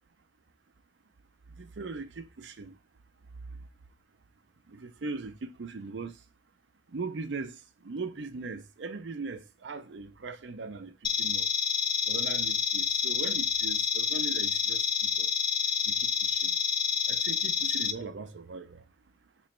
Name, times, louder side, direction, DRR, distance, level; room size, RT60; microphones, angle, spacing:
voice 1, 1.6-2.7 4.7-6.1 6.9-7.6 7.8-10.9 11.2-11.5 12.1-14.8 15.2-15.3 15.9-16.5 17.1-18.8, right 4 dB, 80° right, 0.6 m, -39 dB
sound 1, 11.0-17.9, left 6 dB, 25° left, 0.3 m, -28 dB
3.1 x 3.1 x 4.4 m
head